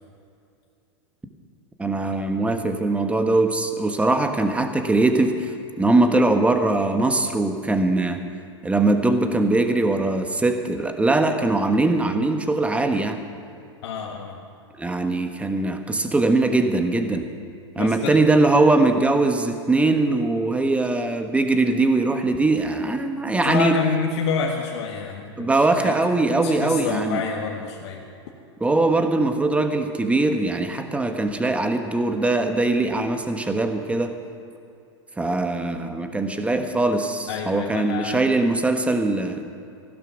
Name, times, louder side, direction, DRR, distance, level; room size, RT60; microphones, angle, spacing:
voice 1, 1.8-5.5 5.8-8.2 8.6-13.2 14.8-17.3 17.7-23.8 25.4-27.2 28.6-34.2 35.2-39.4, right 2 dB, 10° right, 6 dB, 1.3 m, -21 dB
voice 2, 13.8-14.4 17.7-18.2 23.2-26.0 26.3-28.0 37.3-38.2, left 6 dB, 65° left, 0 dB, 1.5 m, -28 dB
15.5 x 12.0 x 6.1 m, 2.5 s
hypercardioid pair, 110°, 15 cm